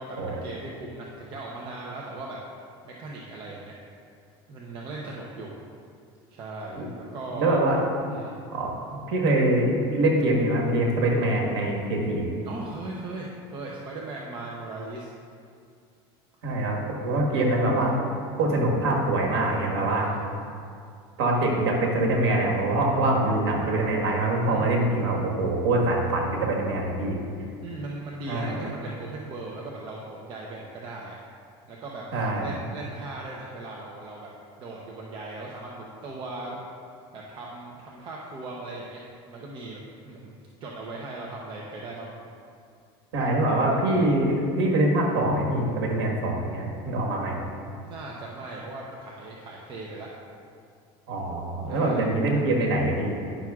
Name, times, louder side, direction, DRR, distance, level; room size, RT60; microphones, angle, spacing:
voice 1, 0.0-2.4 2.8-3.8 4.5-5.6 6.3-7.5 8.1-8.4 12.4-15.1 17.3-17.5 20.0-20.3 24.5-24.9 27.6-31.2 31.7-32.0 32.4-34.3 34.6-36.6 37.1-39.0 39.3-39.8 40.1-42.2 47.8-50.1 51.7-52.0, right 2 dB, 40° right, -3 dB, 0.7 m, -38 dB
voice 2, 7.3-7.8 8.5-12.3 16.4-18.1 18.4-20.1 21.2-27.2 28.3-28.6 32.1-32.5 43.1-47.4 51.1-53.2, right 1 dB, 85° right, -2 dB, 1.5 m, -24 dB
10.0 x 6.0 x 2.4 m, 2.3 s
supercardioid pair, 135°, 13 cm